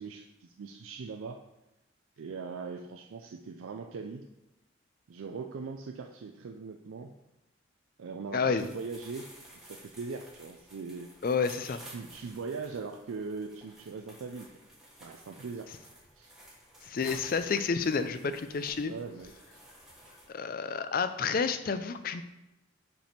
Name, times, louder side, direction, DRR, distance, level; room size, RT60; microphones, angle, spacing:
voice 1, 0.0-1.4 2.2-4.2 5.1-7.1 8.0-9.3 9.6-11.1 11.7-14.5 15.0-15.7 16.1-16.3 18.8-19.6, right 4 dB, 90° right, 4 dB, 0.4 m, -40 dB
voice 2, 8.3-8.7 11.2-11.8 16.8-18.9 20.3-22.2, left 5 dB, 45° left, 10 dB, 0.4 m, -30 dB
sound 1, 8.6-20.3, right 1 dB, 5° right, 1.2 m, -53 dB
5.2 x 5.1 x 4.4 m, 0.94 s
head